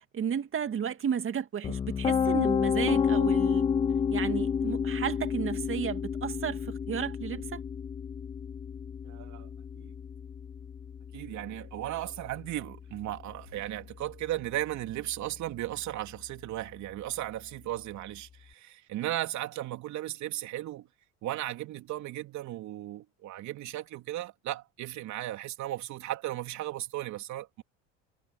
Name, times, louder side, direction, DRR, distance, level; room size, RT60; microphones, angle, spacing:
voice 1, 0.0-3.7 4.1-7.6, right 8 dB, 40° right, 2.4 m, -33 dB
Piano, 1.6-13.6, left 7 dB, 15° left, 0.3 m, -30 dB
voice 2, 9.1-9.9 11.1-20.9 21.2-27.6, right 14 dB, 60° right, 3.5 m, -36 dB
supercardioid pair, 85°, 33 cm